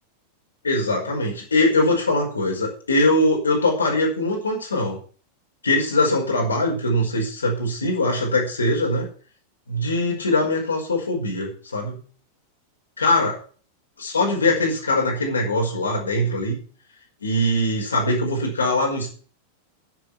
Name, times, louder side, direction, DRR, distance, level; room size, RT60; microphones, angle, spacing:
voice 1, 0.6-5.0 5.6-9.1 9.7-12.0 13.0-13.4 14.0-16.6 17.2-19.1, left 1 dB, 75° left, 0 dB, 5.1 m, -22 dB
10.5 x 7.7 x 7.9 m, 0.42 s
figure-of-eight pair, 90°, 0 cm